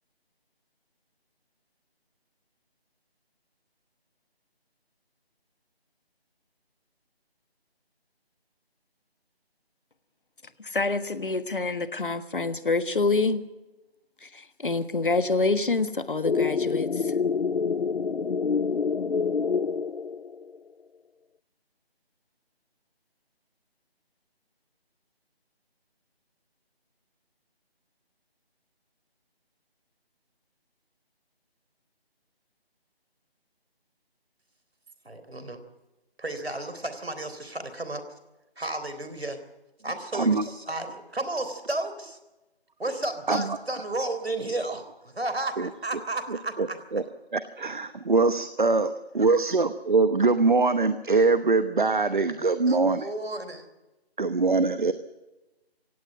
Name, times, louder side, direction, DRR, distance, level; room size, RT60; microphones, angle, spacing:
voice 1, 10.6-13.4 14.2-17.1, left 3 dB, 55° left, 12 dB, 1.4 m, -27 dB
sound 1, 16.2-20.6, left 5 dB, 75° left, 0.7 m, -27 dB
voice 2, 35.0-35.6 36.2-38.0 38.6-39.4 39.8-42.2 42.8-46.8 52.7-53.7, right 2 dB, 75° right, 10 dB, 3.7 m, -33 dB
voice 3, 40.1-40.4 43.3-43.4 45.6-45.7 46.9-47.0 47.3-53.1 54.2-54.9, right 3 dB, 50° right, 12 dB, 1.0 m, -23 dB
18.0 x 16.5 x 8.9 m, 1.0 s
figure-of-eight pair, 160°, 32 cm